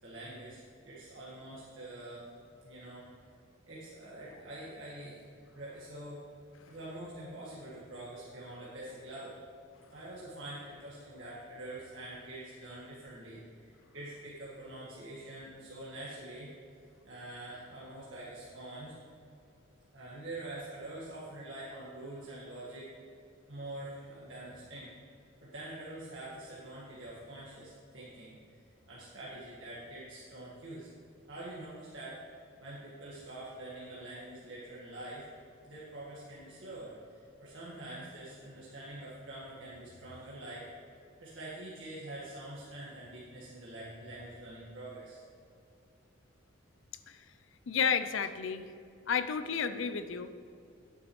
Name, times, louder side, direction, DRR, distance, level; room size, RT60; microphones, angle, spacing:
voice 1, 0.0-2.2 2.6-3.1 3.6-5.2 5.5-6.2 6.7-9.4 9.9-16.5 17.0-18.9 19.9-22.9 23.5-24.9 25.4-28.6 28.9-30.9 31.3-32.2 32.6-35.3 35.6-40.7 41.2-45.2, right 1 dB, 65° right, -8 dB, 1.7 m, -45 dB
voice 2, 47.7-48.6 49.1-50.3, left 6 dB, 65° left, 11 dB, 0.5 m, -31 dB
9.9 x 9.2 x 3.1 m, 2.6 s
head